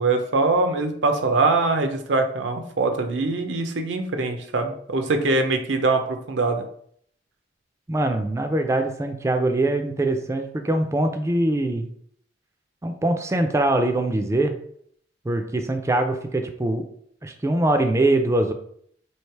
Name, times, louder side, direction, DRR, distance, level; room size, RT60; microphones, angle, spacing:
voice 1, 0.0-6.6, right 3 dB, 85° right, 6 dB, 0.6 m, -23 dB
voice 2, 7.9-11.9 12.8-14.5 15.3-16.9 17.2-18.5, right 2 dB, 15° right, 5 dB, 0.3 m, -23 dB
3.2 x 2.8 x 4.5 m, 0.65 s
head